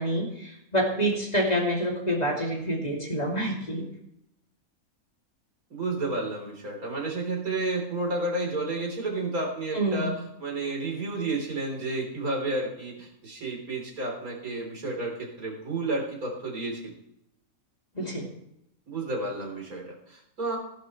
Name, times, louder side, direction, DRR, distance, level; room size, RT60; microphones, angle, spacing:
voice 1, 0.0-3.9 9.7-10.1 17.9-18.3, equal, 30° left, -2 dB, 2.8 m, -27 dB
voice 2, 5.7-10.1 10.4-16.9 18.9-20.6, right 2 dB, 85° right, -1 dB, 4.3 m, -31 dB
17.5 x 11.0 x 3.2 m, 0.80 s
omnidirectional pair, 1.5 m